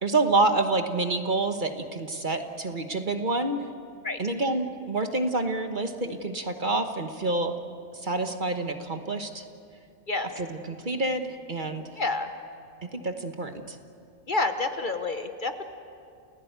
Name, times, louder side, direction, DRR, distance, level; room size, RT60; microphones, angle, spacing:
voice 1, 0.0-3.6 4.2-7.6 7.9-9.4 10.4-11.8 12.8-13.8, right 2 dB, 40° right, 6 dB, 1.3 m, -28 dB
voice 2, 12.0-12.3 14.3-15.6, left 3 dB, 40° left, 7 dB, 1.1 m, -28 dB
30.0 x 16.5 x 8.1 m, 2.5 s
omnidirectional pair, 1.3 m